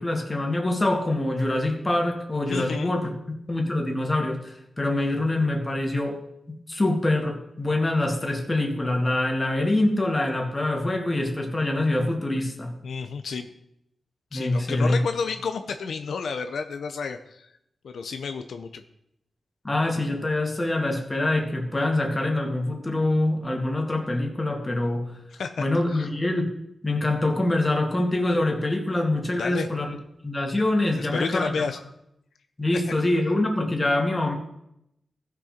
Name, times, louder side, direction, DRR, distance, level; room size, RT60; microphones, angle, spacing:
voice 1, 0.0-3.1 3.5-6.2 6.7-12.7 14.3-15.0 19.6-25.2 25.6-26.5 26.8-29.9 30.2-31.6 32.6-34.3, left 2 dB, 25° left, 2 dB, 2.0 m, -25 dB
voice 2, 2.5-2.9 12.8-13.5 14.3-17.5 17.8-18.8 25.3-26.1 29.4-29.7 31.0-31.8, left 5 dB, 85° left, 7 dB, 0.6 m, -31 dB
15.0 x 6.2 x 4.3 m, 0.79 s
cardioid pair, 75°, 0 cm